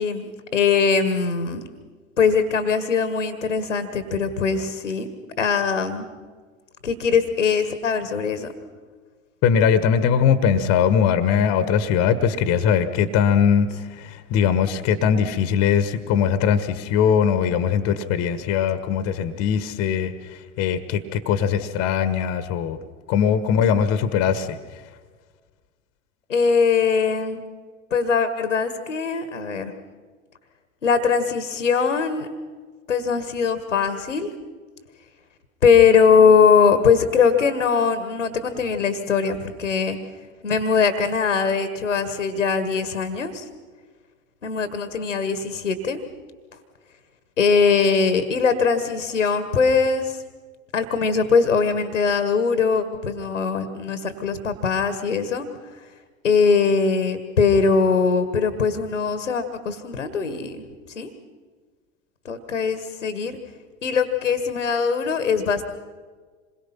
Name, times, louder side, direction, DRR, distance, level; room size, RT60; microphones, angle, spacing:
voice 1, 0.0-1.6 2.2-5.1 5.4-6.1 6.8-8.5 26.3-27.4 27.9-29.7 30.8-32.3 32.9-34.3 35.6-40.0 40.4-43.5 44.4-46.0 47.4-50.2 50.7-55.5 56.2-60.6 60.9-61.1 62.2-63.4 63.8-65.6, left 5 dB, 75° left, 10 dB, 1.5 m, -21 dB
voice 2, 9.4-22.8 23.1-24.6, left 7 dB, 40° left, 12 dB, 1.4 m, -21 dB
27.0 x 21.5 x 5.8 m, 1.5 s
figure-of-eight pair, 80°, 38 cm